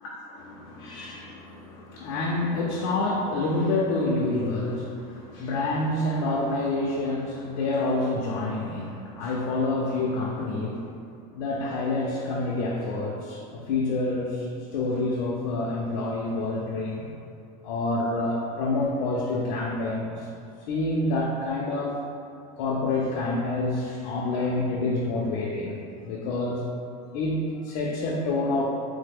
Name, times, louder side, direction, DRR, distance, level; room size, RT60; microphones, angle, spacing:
voice 1, 0.0-11.0 11.3-17.1 17.6-20.3 20.7-22.0 22.6-26.7 27.1-28.7, left 2 dB, 80° left, -4 dB, 0.4 m, -28 dB
3.1 x 2.0 x 3.4 m, 2.4 s
cardioid pair, 175°, 17 cm